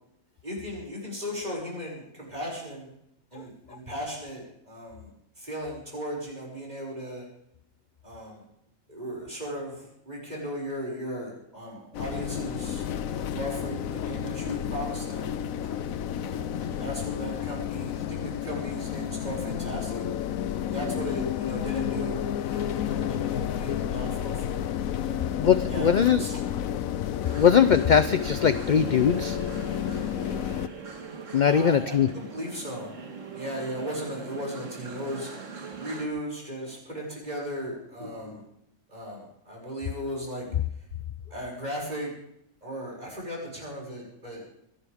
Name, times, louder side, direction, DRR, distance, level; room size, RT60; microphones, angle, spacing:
voice 1, 0.4-2.9 3.3-7.3 8.0-8.4 8.9-15.3 15.6-15.7 16.2-20.0 20.7-25.2 25.7-25.9 26.2-26.4 31.4-32.9 33.3-35.3 35.8-38.4 38.9-40.5 41.3-42.1 42.6-44.5, equal, 30° right, -3 dB, 6.5 m, -36 dB
sound 1, 11.9-30.7, left 10 dB, 75° left, 1.1 m, -31 dB
voice 2, 25.4-26.2 27.4-29.4 31.3-32.1, left 7 dB, 55° left, 12 dB, 0.5 m, -21 dB
sound 2, 27.2-36.1, right 4 dB, 60° right, 2.1 m, -41 dB
26.0 x 11.0 x 3.6 m, 0.76 s
omnidirectional pair, 1.5 m